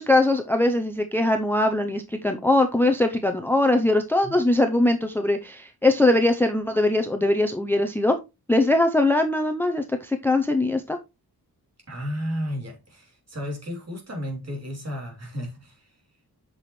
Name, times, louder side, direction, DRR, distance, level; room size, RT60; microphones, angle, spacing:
voice 1, 0.0-8.2 8.5-11.0, left 2 dB, 5° left, 0.6 m, -21 dB
voice 2, 11.9-16.0, equal, 40° right, 3.3 m, -33 dB
8.0 x 6.0 x 3.1 m
wide cardioid pair, 170°, 38 cm